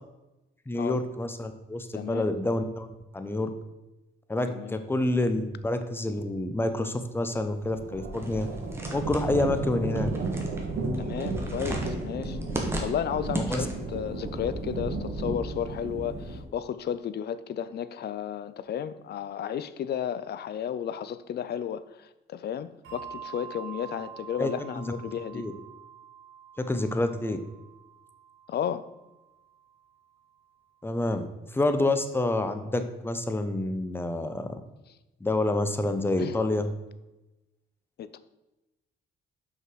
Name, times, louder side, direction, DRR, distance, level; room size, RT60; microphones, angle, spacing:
voice 1, 0.7-3.5 4.3-8.5 8.9-10.1 13.3-13.7 24.4-24.8 25.3-25.5 26.6-27.4 30.8-31.3 31.5-34.5 35.2-36.7, left 2 dB, 10° left, 8 dB, 0.7 m, -28 dB
voice 2, 1.9-2.3 4.5-4.8 11.0-12.4 12.8-25.5 28.5-28.9 36.2-36.4 38.0-38.2, left 9 dB, 55° left, 14 dB, 0.5 m, -33 dB
sound 1, 7.4-16.4, right 2 dB, 55° right, 1.4 m, -33 dB
sound 2, 8.1-14.0, right 1 dB, 10° right, 1.4 m, -37 dB
Bell, 22.8-29.7, right 8 dB, 85° right, 1.8 m, -46 dB
5.8 x 5.5 x 4.7 m, 1.0 s
cardioid pair, 90°, 20 cm